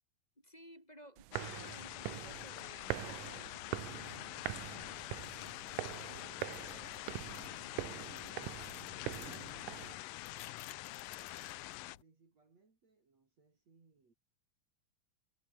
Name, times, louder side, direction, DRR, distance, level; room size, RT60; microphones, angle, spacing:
voice 1, 0.4-6.8, equal, 10° left, 7.4 m, -58 dB
sound 1, 1.2-9.9, right 19 dB, 80° right, 2.1 m, -44 dB
sound 2, 1.3-12.0, left 20 dB, 80° left, 2.2 m, -46 dB
sound 3, 5.2-12.0, left 9 dB, 55° left, 2.4 m, -57 dB
voice 2, 8.2-9.6 10.2-10.7 11.1-14.1, right 4 dB, 45° right, 5.5 m, -68 dB
omnidirectional pair, 4.2 m